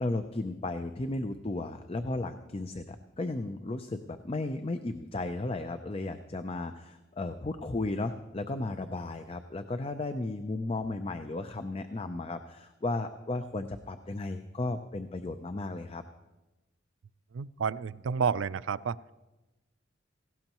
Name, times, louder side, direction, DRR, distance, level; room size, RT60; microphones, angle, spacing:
voice 1, 0.0-16.0, left 2 dB, 30° left, 8 dB, 0.5 m, -34 dB
voice 2, 17.3-19.0, right 6 dB, 80° right, 17 dB, 0.4 m, -30 dB
18.0 x 16.5 x 3.0 m, 1.1 s
head